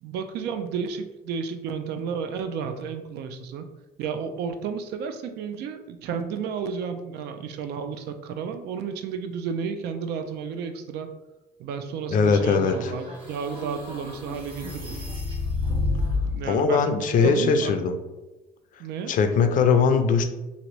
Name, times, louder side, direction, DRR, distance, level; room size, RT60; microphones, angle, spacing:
voice 1, 0.0-3.6 4.0-11.1 11.6-15.0 16.2-17.8 18.8-19.1, right 6 dB, 75° right, 7 dB, 0.4 m, -32 dB
voice 2, 12.1-12.9 16.5-18.0 19.1-20.2, left 5 dB, 50° left, 7 dB, 0.4 m, -20 dB
sound 1, 12.4-16.4, left 3 dB, 30° right, 1.2 m, -30 dB
2.8 x 2.5 x 3.0 m, 1.1 s
cardioid pair, 110°, 17 cm